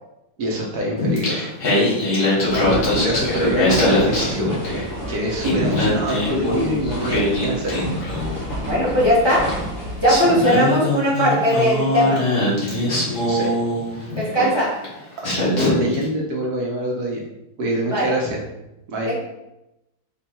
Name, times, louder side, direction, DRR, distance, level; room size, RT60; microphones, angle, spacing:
voice 1, 0.4-1.5 2.1-4.8 5.1-7.9 8.3-8.6 13.3-13.5 13.9-14.1 14.4-14.5 15.6-17.2 17.6-18.4 18.9-19.1, right 1 dB, 70° right, -1 dB, 1.4 m, -25 dB
Singing, 1.0-4.9 5.2-8.5 9.5-9.6 10.0-14.2 14.8-15.0 15.2-16.0, left 1 dB, 70° left, 2.3 m, -22 dB
sound 1, 2.4-10.2, equal, 40° left, 1.0 m, -31 dB
voice 2, 8.6-9.4 10.0-12.2 14.2-14.7 17.9-18.1 19.0-19.2, equal, 20° left, -7 dB, 1.0 m, -18 dB
4.4 x 2.6 x 4.4 m, 0.91 s
omnidirectional pair, 1.8 m